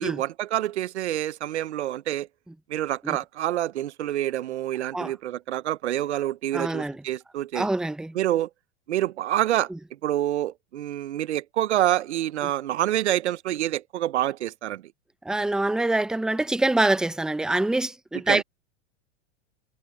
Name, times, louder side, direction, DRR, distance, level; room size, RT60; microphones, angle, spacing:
voice 1, 0.0-2.3 2.7-7.7 8.1-8.5 8.9-14.8 18.3-18.4, right 13 dB, 90° right, 0.8 m, -27 dB
voice 2, 6.5-7.0 7.5-8.1 9.7-9.8 15.2-18.4, right 2 dB, ahead, 0.7 m, -25 dB
hypercardioid pair, 115°, 33 cm